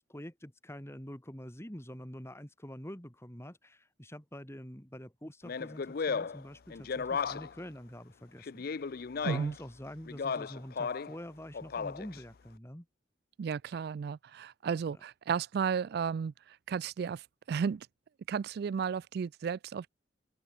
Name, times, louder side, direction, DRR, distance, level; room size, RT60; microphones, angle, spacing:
voice 1, 0.0-8.9 9.2-12.9 14.9-15.0, equal, 15° left, 3.0 m, -46 dB
Speech, 5.4-7.6 8.4-9.6 10.1-11.2 11.5-12.2, left 5 dB, 50° left, 0.5 m, -35 dB
voice 2, 13.4-17.9 18.3-19.9, right 6 dB, 55° right, 0.3 m, -34 dB
open air
head